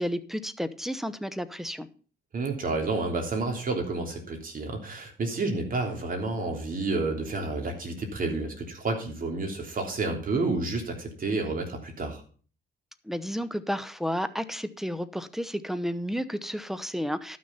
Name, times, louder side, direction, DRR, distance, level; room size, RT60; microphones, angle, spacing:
voice 1, 0.0-1.9 13.0-17.4, equal, ahead, 0.8 m, -32 dB
voice 2, 2.3-12.2, right 3 dB, 45° right, 3.3 m, -30 dB
12.0 x 6.3 x 5.6 m
cardioid pair, 90°, 20 cm